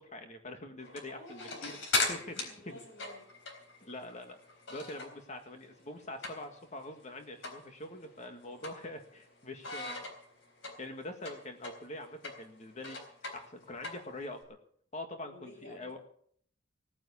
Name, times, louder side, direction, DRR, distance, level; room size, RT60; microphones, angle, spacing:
voice 1, 0.1-1.8 2.1-2.8 3.8-4.4 4.7-10.1 10.8-13.0 13.3-14.4 14.9-16.0, left 1 dB, 40° left, 6 dB, 1.8 m, -44 dB
sound 1, 0.8-5.3 5.6-6.7 7.0-7.1 7.4-7.6 8.0-9.2 9.6-14.4, left 3 dB, 85° left, 4.0 m, -38 dB
voice 2, 1.1-2.1 2.4-3.3 8.5-8.7 15.2-16.0, equal, 65° left, -2 dB, 6.6 m, -52 dB
17.5 x 9.7 x 7.1 m, 0.63 s
head